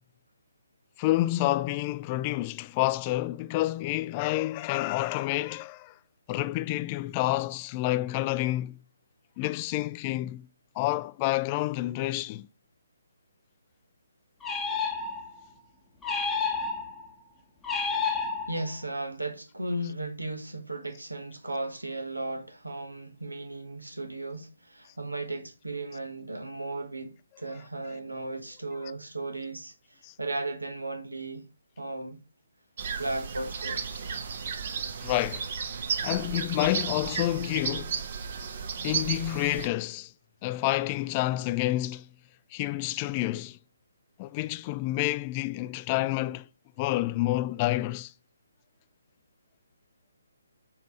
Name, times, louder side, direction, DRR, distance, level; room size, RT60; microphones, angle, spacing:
voice 1, 1.0-5.9 6.3-8.8 9.4-10.5 10.8-12.5 19.8-19.9 27.5-27.7 28.8-28.9 30.0-30.1 35.0-35.5 36.0-37.9 38.8-40.1 40.4-42.1 42.5-43.6 44.2-46.5 46.8-48.1, left 17 dB, 25° left, 0.4 m, -29 dB
sound 1, 14.4-15.5 16.0-17.1 17.6-18.8, left 5 dB, 10° left, 0.9 m, -30 dB
voice 2, 18.5-31.4 31.8-32.2 33.0-34.1, right 2 dB, 85° right, 1.2 m, -36 dB
sound 2, 32.8-39.7, right 6 dB, 45° right, 1.0 m, -33 dB
7.4 x 4.0 x 4.5 m
figure-of-eight pair, 140°, 0 cm